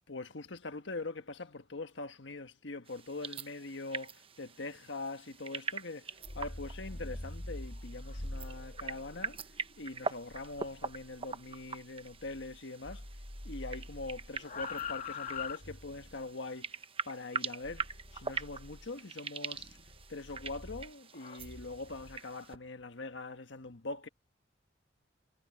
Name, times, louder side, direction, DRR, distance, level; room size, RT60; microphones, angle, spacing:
voice 1, 0.1-9.4 9.8-13.1 13.4-16.8 17.1-17.9 18.1-19.8 20.1-24.1, left 3 dB, 70° left, 1.4 m, -43 dB
sound 1, 2.9-22.6, right 5 dB, 30° right, 0.9 m, -43 dB
sound 2, 6.1-12.6 12.8-16.2 17.6-18.9 19.5-22.2, left 3 dB, 45° left, 1.7 m, -45 dB
head